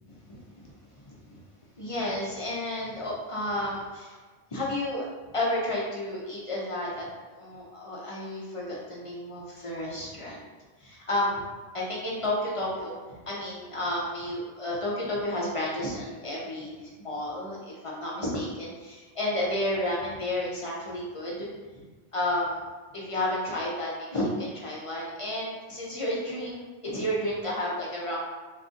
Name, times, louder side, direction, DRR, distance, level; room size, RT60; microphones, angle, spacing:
voice 1, 1.0-1.4 1.8-4.2 4.5-5.1 5.3-7.1 7.3-10.4 10.8-11.4 11.7-21.5 21.8-21.9 22.1-28.2, left 1 dB, 40° left, -5 dB, 0.5 m, -31 dB
2.5 x 2.4 x 3.7 m, 1.3 s
omnidirectional pair, 1.2 m